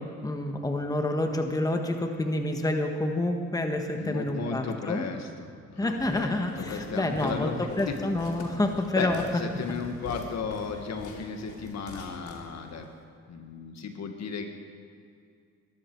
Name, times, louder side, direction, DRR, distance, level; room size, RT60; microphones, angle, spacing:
voice 1, 0.0-5.0 5.8-9.2, left 1 dB, 10° left, 4 dB, 1.5 m, -28 dB
voice 2, 3.9-7.9 8.9-12.9 13.3-14.5, left 5 dB, 60° left, 5 dB, 1.7 m, -35 dB
Walk footsteps, 6.0-12.9, left 3 dB, 85° left, 2.7 m, -44 dB
20.5 x 13.0 x 4.6 m, 2.3 s
cardioid pair, 90°, 30 cm